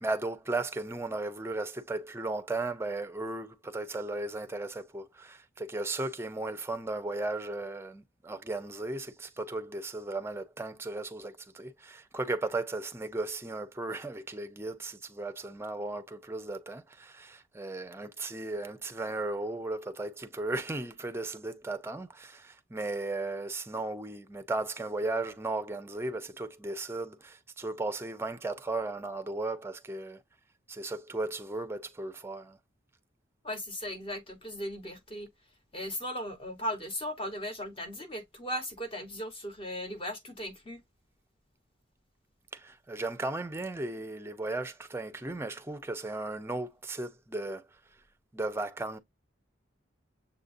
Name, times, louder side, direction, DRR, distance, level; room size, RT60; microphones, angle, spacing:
voice 1, 0.0-30.2 30.7-32.6 42.5-47.7 48.3-49.0, right 2 dB, 15° right, 0.5 m, -36 dB
voice 2, 33.4-35.3 35.7-40.8, equal, 30° left, 1.0 m, -37 dB
7.0 x 2.6 x 2.5 m
head